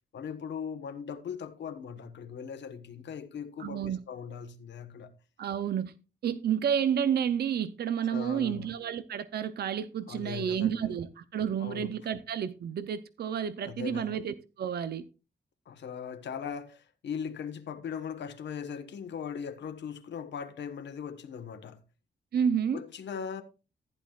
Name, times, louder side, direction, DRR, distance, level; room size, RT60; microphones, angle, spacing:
voice 1, 0.1-5.1 8.1-8.7 10.1-10.9 11.6-11.9 13.6-14.2 15.7-21.8 22.7-23.4, left 7 dB, 85° left, 1.3 m, -39 dB
voice 2, 3.6-4.0 5.4-5.9 6.2-15.0 22.3-22.8, right 8 dB, 65° right, 0.6 m, -30 dB
14.5 x 10.5 x 2.4 m
wide cardioid pair, 180°, 18 cm